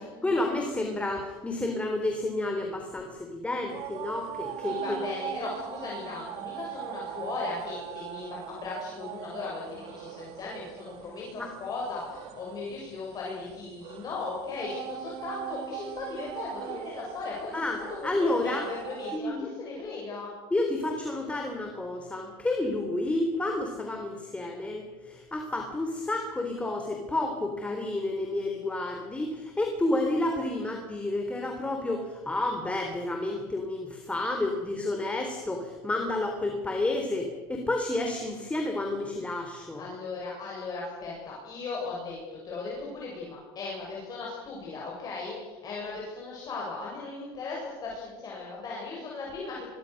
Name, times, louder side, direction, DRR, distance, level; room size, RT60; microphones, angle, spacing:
voice 1, 0.0-5.0 11.4-11.5 17.5-18.7 19.1-19.5 20.5-39.9, left 2 dB, 10° left, 3 dB, 3.5 m, -30 dB
sound 1, 3.7-19.2, right 11 dB, 55° right, 2.6 m, -40 dB
voice 2, 4.6-17.5 18.0-20.3 39.7-49.7, left 3 dB, 35° left, -3 dB, 7.6 m, -37 dB
28.5 x 23.0 x 6.6 m, 1.4 s
supercardioid pair, 110°, 12 cm